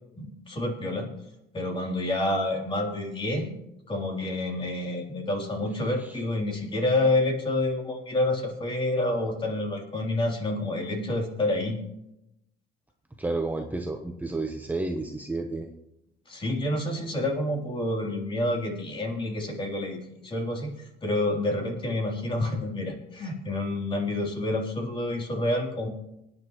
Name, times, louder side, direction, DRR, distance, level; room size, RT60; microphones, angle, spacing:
voice 1, 0.2-1.1 1.5-3.5 3.9-11.8 16.3-20.7 21.0-25.9, left 1 dB, 30° left, 0 dB, 3.4 m, -28 dB
voice 2, 13.2-15.7, right 2 dB, 10° right, 3 dB, 1.0 m, -31 dB
23.5 x 9.9 x 3.1 m, 0.86 s
cardioid pair, 110°, 17 cm